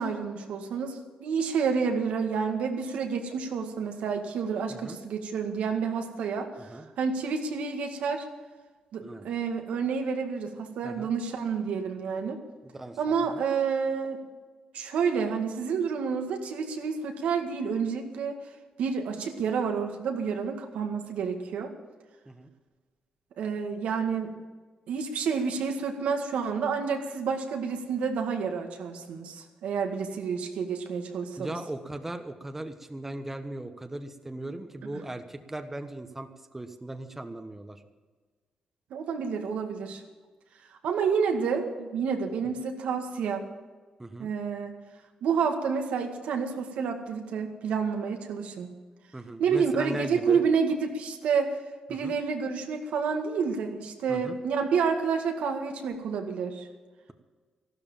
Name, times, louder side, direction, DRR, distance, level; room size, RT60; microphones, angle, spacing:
voice 1, 0.0-8.3 8.9-12.4 13.0-14.2 14.7-18.4 18.8-21.7 23.4-24.4 24.9-31.5 34.8-35.0 38.9-40.0 40.8-43.5 44.2-44.7 45.2-48.7 49.4-51.5 51.9-56.7, right 6 dB, 90° right, 4 dB, 2.0 m, -29 dB
voice 2, 12.7-13.4 22.3-22.5 31.4-37.8 44.0-44.3 49.1-50.4 52.0-52.1 54.1-54.4, right 1 dB, 15° right, 7 dB, 1.2 m, -38 dB
14.5 x 12.5 x 7.3 m, 1.4 s
cardioid pair, 105°, 2 cm